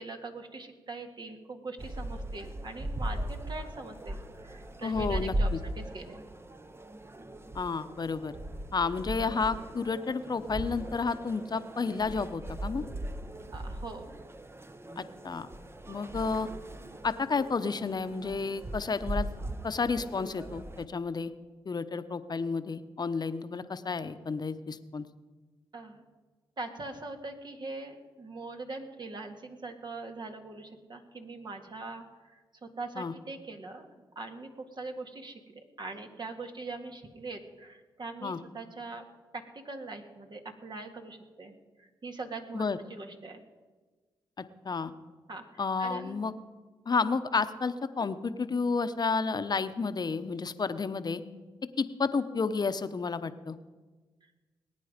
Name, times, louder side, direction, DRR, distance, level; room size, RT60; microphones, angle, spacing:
voice 1, 0.0-6.2 13.5-14.1 25.7-26.0 26.6-33.9 34.2-39.0 39.3-43.4 45.3-46.3 54.2-54.3, right 3 dB, 50° right, 4 dB, 1.9 m, -42 dB
sound 1, 1.8-20.9, right 1 dB, 25° right, 1.0 m, -38 dB
voice 2, 4.8-5.6 7.5-8.3 8.7-12.8 15.0-15.5 15.9-16.5 17.0-19.3 19.6-21.3 21.6-25.1 33.0-33.1 38.2-38.4 42.5-42.8 44.4-44.9 45.6-46.3 46.9-51.2 51.8-53.6, left 4 dB, 45° left, 11 dB, 0.9 m, -31 dB
20.5 x 9.3 x 5.2 m, 1.3 s
supercardioid pair, 50°, 10 cm